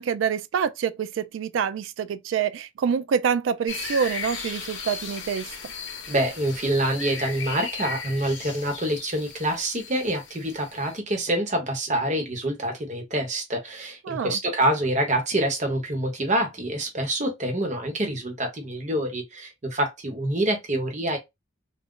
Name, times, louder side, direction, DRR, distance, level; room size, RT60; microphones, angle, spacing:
voice 1, 0.0-5.5 14.0-14.4, right 7 dB, 85° right, 0.3 m, -26 dB
sound 1, 3.7-11.0, left 5 dB, 75° left, 0.7 m, -36 dB
voice 2, 6.1-21.2, right 1 dB, 40° right, 0.9 m, -26 dB
2.4 x 2.1 x 3.6 m
head